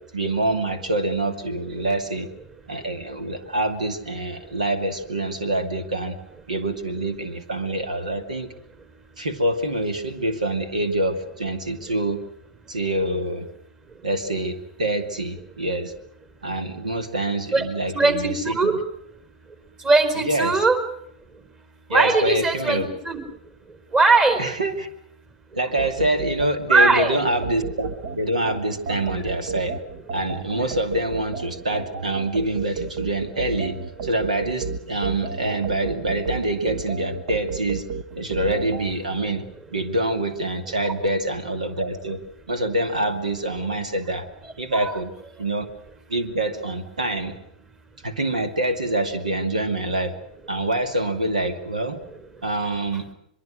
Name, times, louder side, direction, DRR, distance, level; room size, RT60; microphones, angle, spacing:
voice 1, 0.1-2.3 2.7-6.2 6.5-8.5 9.2-12.2 12.7-13.5 14.0-15.9 16.4-18.7 20.2-20.6 21.9-22.9 24.4-24.9 25.5-29.8 30.1-37.9 38.1-42.2 42.5-44.3 44.6-45.1 45.4-45.7 46.1-47.4 48.0-50.2 50.5-52.0 52.4-53.1, right 1 dB, 80° right, 9 dB, 2.6 m, -26 dB
voice 2, 17.9-18.7 19.8-20.8 21.9-23.2 23.9-24.4 26.7-27.2 44.8-44.9, right 3 dB, 25° right, 9 dB, 4.4 m, -19 dB
sound 1, 25.8-38.9, right 5 dB, 55° right, 1.6 m, -32 dB
24.0 x 23.0 x 6.4 m, 0.75 s
figure-of-eight pair, 105°, 4 cm